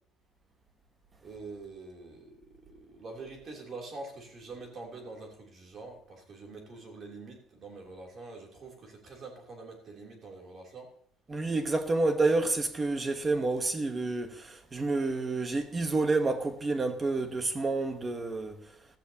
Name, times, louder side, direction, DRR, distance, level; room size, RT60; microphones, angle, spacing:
voice 1, 1.2-2.4 2.6-10.9, right 3 dB, 35° right, 3.0 m, -45 dB
voice 2, 11.3-18.6, right 3 dB, 20° right, 1.1 m, -29 dB
15.5 x 13.0 x 2.8 m
cardioid pair, 175°, 0 cm